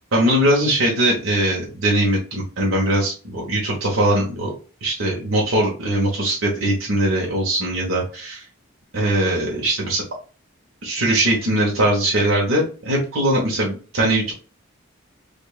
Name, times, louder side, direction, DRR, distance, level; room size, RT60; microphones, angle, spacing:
voice 1, 0.1-4.5 4.8-8.4 8.9-10.0 10.8-14.3, right 1 dB, 70° right, -4 dB, 1.1 m, -20 dB
5.2 x 2.5 x 2.3 m, 0.36 s
head